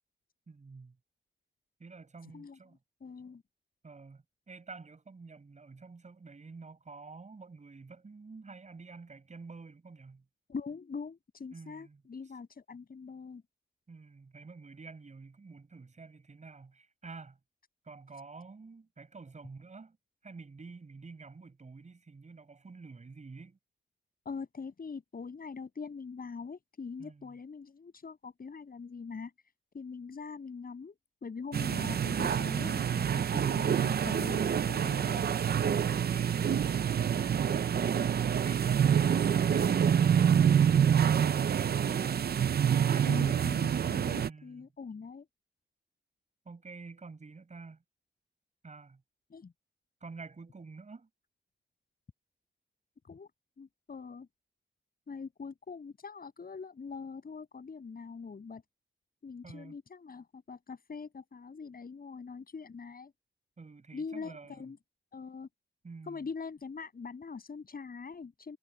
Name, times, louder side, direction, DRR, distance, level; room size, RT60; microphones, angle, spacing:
voice 1, 0.5-1.0 1.8-2.8 3.8-10.2 11.5-12.0 13.9-17.4 17.8-20.0 20.2-23.6 27.0-27.3 44.3-44.7 46.4-47.8 48.6-49.0 50.0-51.1 59.4-59.8 63.6-64.6 65.8-66.3, right 4 dB, 35° right, 7.5 m, -49 dB
voice 2, 2.2-2.6 3.0-3.4 10.5-13.4 24.3-29.3 29.7-35.2 43.1-45.3 49.3-49.5 53.1-53.3 53.6-54.3 55.1-58.6 59.2-63.1 63.9-64.8 65.1-65.5 66.0-68.6, left 5 dB, 50° left, 7.3 m, -43 dB
sound 1, 31.5-44.3, right 8 dB, 50° right, 0.5 m, -27 dB
wide cardioid pair, 155°, 20 cm